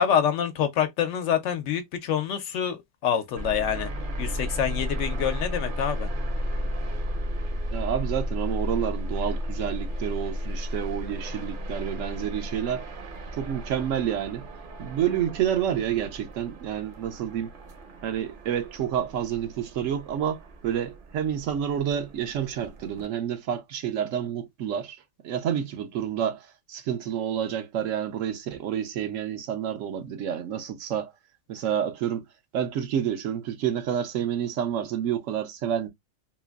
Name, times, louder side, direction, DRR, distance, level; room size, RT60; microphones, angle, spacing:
voice 1, 0.0-3.9 4.2-6.1, left 8 dB, 75° left, 0.9 m, -26 dB
sound 1, 3.4-23.1, equal, 50° right, 0.7 m, -34 dB
voice 2, 7.7-12.9 13.3-14.5 14.8-17.5 18.0-31.1 31.5-32.2 32.5-35.9, right 9 dB, 80° right, 1.0 m, -29 dB
3.0 x 2.4 x 2.3 m
omnidirectional pair, 1.3 m